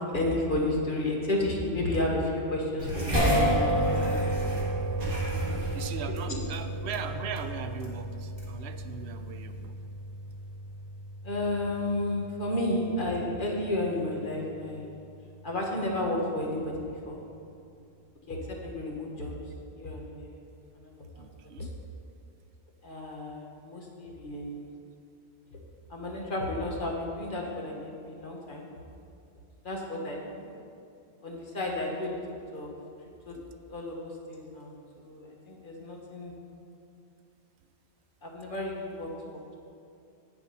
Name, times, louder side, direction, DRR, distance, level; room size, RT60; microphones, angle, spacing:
voice 1, 0.1-3.5 3.8-4.2 4.5-4.7 6.2-6.4 11.2-15.0 15.4-17.2 18.3-19.3 19.7-20.4 20.8-21.3 21.6-21.7 22.8-24.7 25.9-28.7 29.6-30.4 31.2-32.2 32.5-32.7 33.2-33.3 33.7-36.3 38.2-39.1, left 1 dB, 50° left, -1 dB, 1.4 m, -32 dB
sound 1, 2.8-9.7, right 1 dB, 40° right, 1.8 m, -36 dB
sound 2, 3.1-15.4, equal, 20° right, 1.9 m, -32 dB
voice 2, 5.7-9.8 21.2-21.8 33.3-33.5, right 6 dB, 70° right, 9 dB, 0.8 m, -39 dB
8.3 x 7.3 x 5.4 m, 2.5 s
omnidirectional pair, 1.1 m